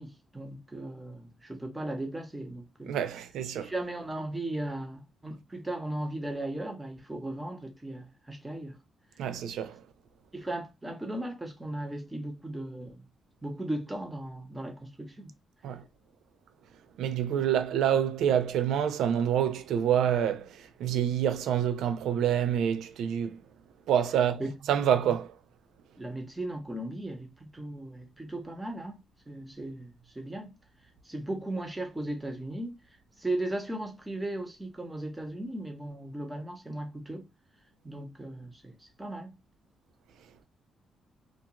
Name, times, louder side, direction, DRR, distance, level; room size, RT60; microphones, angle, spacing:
voice 1, 0.0-2.9 3.6-8.8 10.3-13.0 13.4-15.3 24.4-24.5 26.0-30.5 31.0-32.8 33.2-37.2 37.8-39.3, right 1 dB, 15° right, 0.7 m, -37 dB
voice 2, 2.9-3.7 9.2-9.8 15.6-15.8 17.0-23.4 23.9-24.4 24.7-25.3, right 9 dB, 90° right, 0.4 m, -27 dB
2.3 x 2.2 x 2.9 m
cardioid pair, 105°, 0 cm